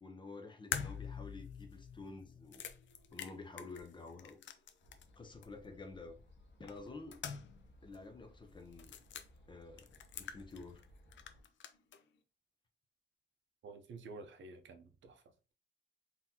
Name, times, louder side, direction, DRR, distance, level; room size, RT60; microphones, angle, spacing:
voice 1, 0.0-2.7 3.1-4.4 5.2-6.2 6.6-7.2 7.8-8.9 9.5-10.8, left 3 dB, 25° left, 0.5 m, -50 dB
sound 1, 0.7-5.2 5.4-5.5 6.7-7.7 7.9-8.0 8.7-9.3 9.8-10.9 11.1-12.0, left 8 dB, 80° left, 0.5 m, -45 dB
sound 2, 4.8-11.4, left 1 dB, 65° left, 0.9 m, -62 dB
voice 2, 13.6-15.2, right 3 dB, 85° right, 0.7 m, -51 dB
3.9 x 2.8 x 2.8 m
wide cardioid pair, 155°, 19 cm